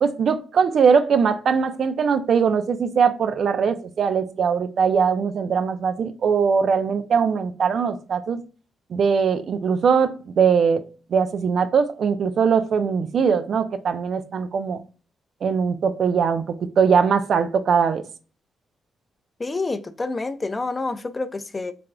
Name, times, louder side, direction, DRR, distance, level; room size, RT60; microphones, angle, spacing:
voice 1, 0.0-8.4 8.9-10.8 11.1-14.8 15.4-18.0, right 6 dB, 65° right, 0.4 m, -21 dB
voice 2, 19.4-21.7, left 3 dB, 30° left, 0.4 m, -28 dB
3.7 x 3.4 x 2.2 m
cardioid pair, 65°, 0 cm